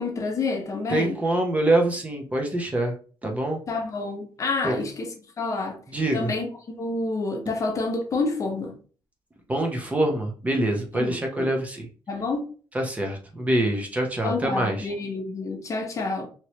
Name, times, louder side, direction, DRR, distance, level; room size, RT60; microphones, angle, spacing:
voice 1, 0.0-1.2 3.7-5.8 6.1-6.5 6.8-8.7 11.0-11.5 12.1-12.5 14.2-16.3, left 3 dB, 40° left, 0.7 m, -28 dB
voice 2, 0.9-2.9 3.2-3.6 4.6-4.9 5.9-6.3 9.5-11.9 12.7-14.9, right 1 dB, 15° right, 0.6 m, -25 dB
3.0 x 2.9 x 2.9 m
cardioid pair, 150°, 9 cm